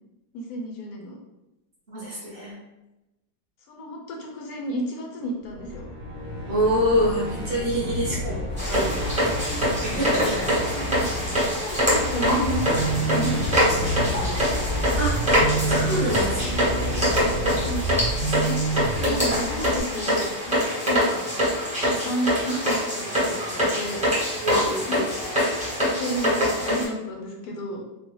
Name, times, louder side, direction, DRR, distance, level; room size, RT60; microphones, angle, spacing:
voice 1, 0.3-1.2 3.7-5.8 8.0-8.2 9.2-9.3 10.4-14.5 17.5-21.2 21.7-24.0 24.6-27.8, equal, 70° left, 0 dB, 0.9 m, -33 dB
voice 2, 1.9-2.6 6.5-8.4 8.7-8.9 9.1-9.4 9.8-10.6 15.0-15.2 15.7-16.7 24.4-25.0, equal, 45° right, -5 dB, 0.7 m, -26 dB
sound 1, 5.4-19.5, equal, 50° left, 0.5 m, -31 dB
sound 2, 8.6-26.8, equal, 5° right, 0.6 m, -24 dB
sound 3, 11.8-19.8, right 3 dB, 75° right, 1.2 m, -29 dB
3.8 x 2.1 x 2.9 m, 0.96 s
omnidirectional pair, 2.0 m